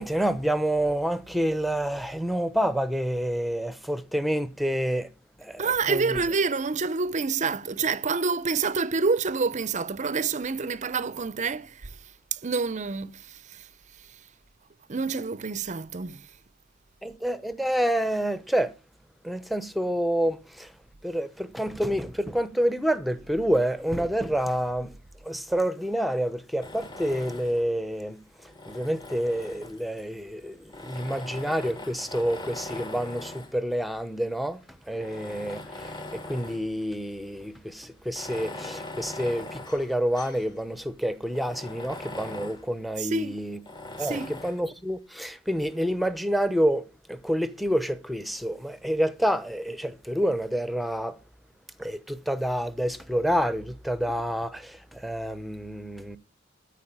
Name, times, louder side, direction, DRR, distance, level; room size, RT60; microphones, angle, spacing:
voice 1, 0.0-5.1 5.4-6.2 17.0-18.7 19.2-20.7 21.0-25.0 25.2-43.6 44.0-51.2 51.8-56.2, equal, ahead, 0.8 m, -28 dB
voice 2, 5.6-12.0 12.3-13.7 14.9-16.2 43.0-43.4 44.0-44.4, right 4 dB, 35° right, 0.6 m, -28 dB
Tools, 26.6-27.7 28.4-30.0 30.7-33.6 34.3-34.4 34.9-36.7 37.1-37.2 38.0-40.5 40.9-41.0 41.3-42.7 43.7-44.7, left 2 dB, 20° left, 1.4 m, -41 dB
13.5 x 4.8 x 8.7 m
head